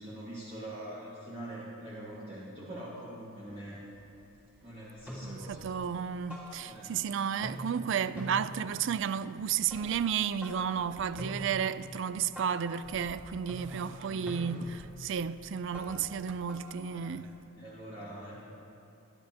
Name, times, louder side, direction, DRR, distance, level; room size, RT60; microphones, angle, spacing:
voice 1, 0.0-3.8 4.6-5.7 6.6-7.0 13.7-14.6 16.9-17.2 17.5-18.3, right 1 dB, 25° right, 1.7 m, -44 dB
sound 1, 3.5-3.6 3.9-4.6 4.9-7.1 7.3-17.5, equal, 5° right, 2.6 m, -46 dB
voice 2, 5.2-17.3, right 7 dB, 55° right, 0.3 m, -32 dB
25.0 x 10.5 x 2.9 m
head